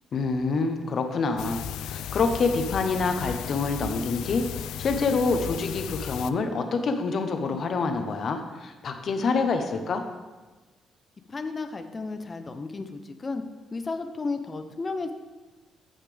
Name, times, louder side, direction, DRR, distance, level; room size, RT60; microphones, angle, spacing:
voice 1, 0.1-4.4 4.8-10.0, left 4 dB, 55° left, 6 dB, 1.1 m, -26 dB
sound 1, 1.4-6.3, left 9 dB, 85° left, 0.3 m, -35 dB
voice 2, 11.3-13.4 13.7-15.1, left 3 dB, 30° left, 7 dB, 0.8 m, -33 dB
15.0 x 5.7 x 3.4 m, 1.2 s
cardioid pair, 90°, 0 cm